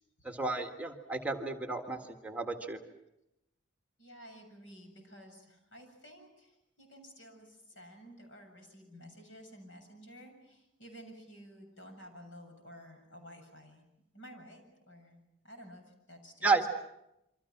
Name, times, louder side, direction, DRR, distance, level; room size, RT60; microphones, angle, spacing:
voice 1, 0.2-2.8 16.4-16.6, right 3 dB, 10° right, 3 dB, 1.7 m, -32 dB
voice 2, 4.0-13.8 14.1-15.2 15.4-16.7, equal, 80° left, 4 dB, 7.4 m, -53 dB
28.0 x 25.5 x 6.0 m, 0.85 s
head